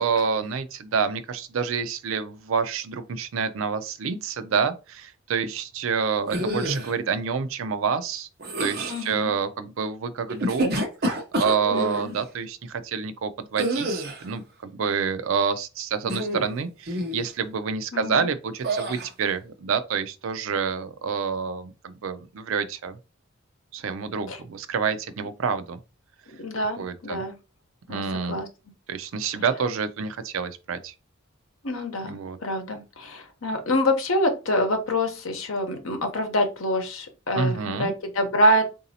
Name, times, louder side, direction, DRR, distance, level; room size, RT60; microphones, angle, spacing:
voice 1, 0.0-8.3 8.6-10.7 11.4-23.0 23.7-25.8 26.8-27.2 27.9-28.4 28.9-30.9 32.1-32.4 37.3-37.9, right 6 dB, 70° right, 0.4 m, -28 dB
sound 1, 6.3-6.9 8.4-9.1 10.3-12.0 13.6-14.3 16.0-16.5 16.9-17.2 18.6-19.1, right 1 dB, 50° right, 0.8 m, -28 dB
voice 2, 8.9-9.3 11.7-12.2 17.9-18.3 24.3-24.4 26.3-27.4 27.9-28.0 28.3-28.5 31.6-38.7, equal, 75° left, 0.9 m, -26 dB
3.9 x 2.7 x 2.7 m
head